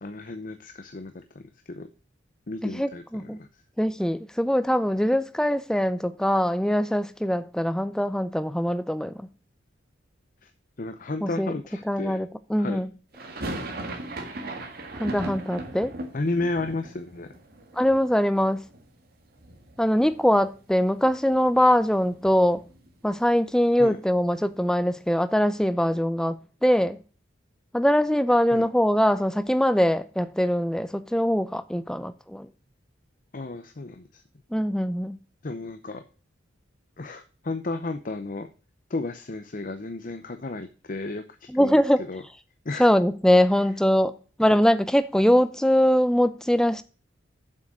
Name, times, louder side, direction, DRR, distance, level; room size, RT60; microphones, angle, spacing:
voice 1, 0.0-1.4 1.7-1.9 2.5-3.0 3.4-3.5 10.4-10.5 10.8-12.2 12.6-12.8 16.1-17.3 23.8-24.0 28.5-28.6 33.3-34.2 35.4-36.0 37.0-38.5 38.9-41.8 42.1-42.2 42.6-42.9, left 2 dB, 45° left, 0.7 m, -33 dB
voice 2, 2.6-3.4 3.8-9.3 11.2-11.5 11.9-12.9 15.0-15.9 17.7-18.6 19.8-22.6 23.0-27.0 27.7-32.5 34.5-35.2 41.5-42.0 42.8-46.8, equal, 5° left, 0.5 m, -22 dB
sound 1, 13.1-19.1 19.3-20.2 20.5-20.6 20.8-23.0, right 1 dB, 50° right, 1.8 m, -38 dB
7.6 x 6.3 x 6.2 m
head